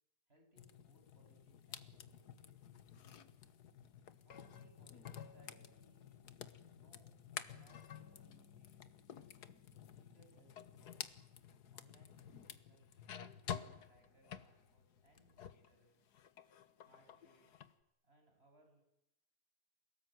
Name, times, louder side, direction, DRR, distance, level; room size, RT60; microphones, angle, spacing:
voice 1, 0.3-2.6 4.2-7.2 7.4-11.4 11.7-15.9 16.8-17.5 18.0-18.8, right 1 dB, 40° right, 2 dB, 8.3 m, -71 dB
sound 1, 0.6-15.7 16.0-17.7, left 8 dB, 75° left, 1.8 m, -51 dB
28.0 x 18.5 x 9.4 m, 0.86 s
omnidirectional pair, 1.7 m